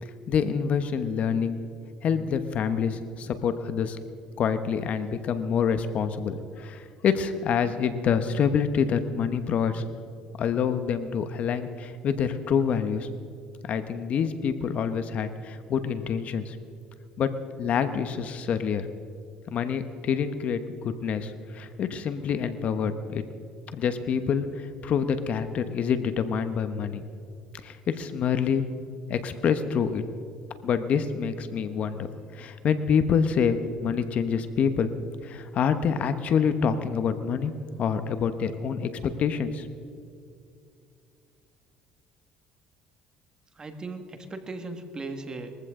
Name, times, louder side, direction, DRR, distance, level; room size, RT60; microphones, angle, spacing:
voice 1, 0.0-1.6 2.0-4.0 4.4-9.8 10.4-13.1 13.6-16.6 17.2-17.3 17.6-18.9 19.5-23.2 23.7-27.1 27.6-28.6 29.1-30.0 30.6-32.1 32.3-34.9 35.2-37.5 37.8-39.7, left 7 dB, 55° left, 10 dB, 1.1 m, -27 dB
voice 2, 43.6-45.6, right 3 dB, 25° right, 6 dB, 1.8 m, -37 dB
21.5 x 15.0 x 3.8 m, 2.5 s
supercardioid pair, 100°, 3 cm